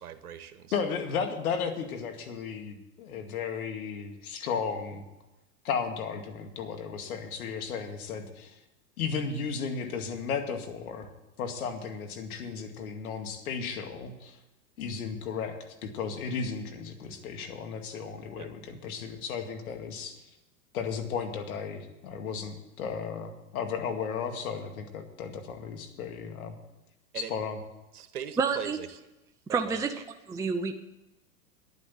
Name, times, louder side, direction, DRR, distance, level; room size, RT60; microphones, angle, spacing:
voice 1, 0.0-0.7 18.4-18.5 27.1-27.3 27.9-29.0 29.5-29.8, right 9 dB, 75° right, 10 dB, 1.5 m, -40 dB
voice 2, 0.7-5.1 5.6-8.6 9.0-11.1 11.4-14.4 14.8-20.2 20.7-26.6 27.1-27.6, left 6 dB, 70° left, 5 dB, 2.2 m, -34 dB
voice 3, 28.4-28.8 29.5-30.8, right 5 dB, 5° right, 5 dB, 0.6 m, -29 dB
10.5 x 9.8 x 7.5 m, 0.99 s
hypercardioid pair, 105°, 45 cm